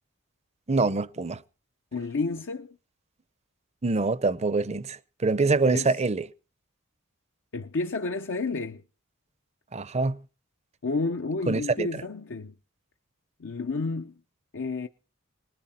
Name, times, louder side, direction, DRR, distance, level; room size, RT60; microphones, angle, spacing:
voice 1, 0.7-1.4 3.8-6.3 9.7-10.2 11.5-11.9, right 3 dB, 30° right, 0.6 m, -25 dB
voice 2, 1.9-2.8 5.7-6.0 7.5-8.8 10.8-12.5 13.4-14.2 14.5-14.9, left 3 dB, 60° left, 0.7 m, -31 dB
19.5 x 12.5 x 4.3 m
head